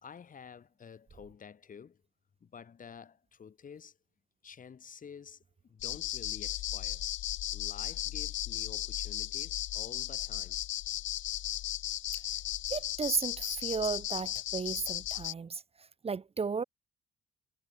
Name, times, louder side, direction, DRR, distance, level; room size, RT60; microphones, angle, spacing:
voice 1, 0.0-2.0 2.4-4.0 4.4-7.0 7.5-10.6, left 7 dB, 40° left, 1.5 m, -50 dB
sound 1, 5.8-15.3, left 14 dB, 75° left, 0.6 m, -36 dB
voice 2, 12.7-15.6 16.0-16.6, right 5 dB, 30° right, 0.9 m, -34 dB
cardioid pair, 90°, 20 cm